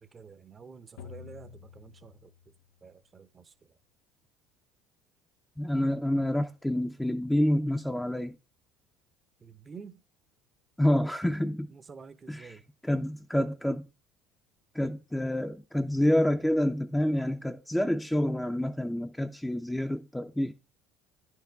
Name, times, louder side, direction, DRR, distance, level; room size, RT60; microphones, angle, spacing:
voice 1, 0.0-2.5 2.8-3.7 9.4-10.0 11.7-12.7, right 5 dB, 30° right, 0.8 m, -49 dB
sound 1, 1.0-2.9, left 7 dB, 80° left, 0.6 m, -49 dB
voice 2, 5.6-8.4 10.8-11.7 12.3-12.5 12.8-13.8 14.7-20.5, left 1 dB, 5° left, 0.6 m, -28 dB
10.0 x 4.7 x 3.5 m
hypercardioid pair, 80°, 0 cm